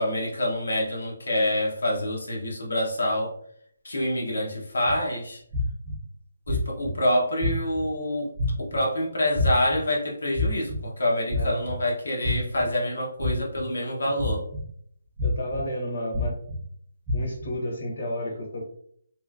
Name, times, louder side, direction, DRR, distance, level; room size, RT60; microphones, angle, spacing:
voice 1, 0.0-3.3 3.8-5.4 6.5-8.3 8.6-14.4, left 1 dB, 80° left, -2 dB, 0.8 m, -26 dB
sound 1, 4.8-4.9 5.5-6.0 6.5-6.9 7.4-7.8 8.4-8.8 9.4-9.8 10.3-10.8 11.3-11.7 12.2-12.6 13.2-13.6 14.2-14.6 15.2-15.6 16.1-16.6 17.1-17.5, left 3 dB, 20° right, 0.5 m, -27 dB
voice 2, 15.2-16.4 17.1-18.6, left 1 dB, 60° left, 0 dB, 1.1 m, -31 dB
2.9 x 2.2 x 2.4 m, 0.64 s
hypercardioid pair, 170°, 0 cm